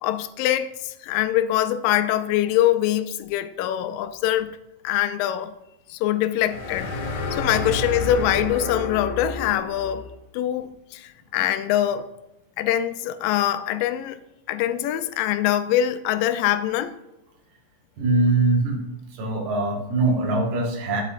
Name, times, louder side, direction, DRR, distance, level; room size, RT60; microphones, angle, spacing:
voice 1, 0.0-4.6 4.8-5.5 5.9-6.9 7.3-10.0 10.3-12.1 12.6-14.2 14.5-17.0, left 12 dB, 85° left, 2.2 m, -23 dB
sound 1, 6.4-10.2, left 2 dB, 60° left, 2.2 m, -30 dB
voice 2, 18.0-18.8 19.1-21.0, right 3 dB, 80° right, 3.3 m, -22 dB
9.8 x 8.1 x 2.5 m
omnidirectional pair, 3.9 m